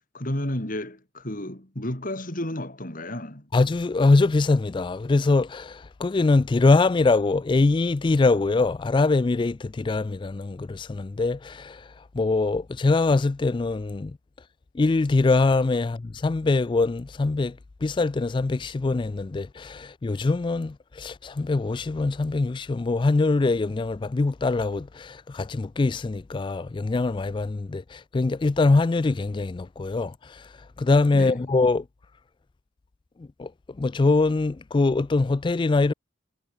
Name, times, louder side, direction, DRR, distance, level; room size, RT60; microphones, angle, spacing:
voice 1, 0.0-3.5 31.1-31.5, left 1 dB, 45° left, 3.9 m, -32 dB
voice 2, 3.5-11.8 12.1-14.2 14.7-30.4 30.8-31.8 33.2-33.5 33.8-35.9, left 3 dB, 25° left, 0.3 m, -23 dB
head